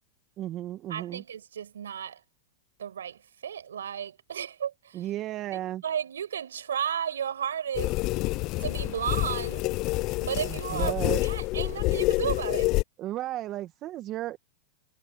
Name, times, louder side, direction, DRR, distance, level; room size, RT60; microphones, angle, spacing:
voice 1, 0.4-1.2 4.9-5.8 10.5-11.2 13.0-14.4, right 14 dB, 40° right, 1.5 m, -34 dB
voice 2, 0.9-2.2 2.8-5.1 5.5-8.0 8.6-9.7 10.2-12.7, right 8 dB, 85° right, 5.9 m, -33 dB
sound 1, 7.8-12.8, left 21 dB, 45° left, 0.3 m, -27 dB
hypercardioid pair, 110°, 0 cm